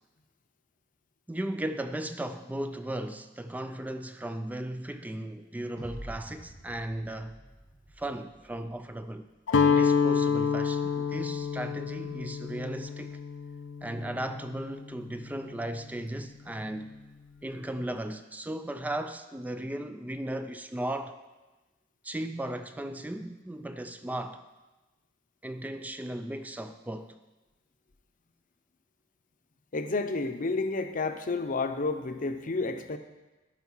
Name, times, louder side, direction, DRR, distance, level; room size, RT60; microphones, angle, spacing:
voice 1, 1.3-7.4 8.0-9.3 9.6-13.2 13.8-17.0 17.4-21.2 22.0-24.4 25.4-27.2, right 1 dB, 10° right, 9 dB, 0.3 m, -36 dB
sound 1, 5.8-9.1, right 1 dB, 65° right, 1.9 m, -47 dB
Guitar, 9.5-15.5, left 6 dB, 80° left, 0.5 m, -28 dB
voice 2, 29.7-33.0, left 3 dB, 45° left, 8 dB, 0.7 m, -30 dB
13.0 x 5.6 x 5.6 m, 1.1 s
head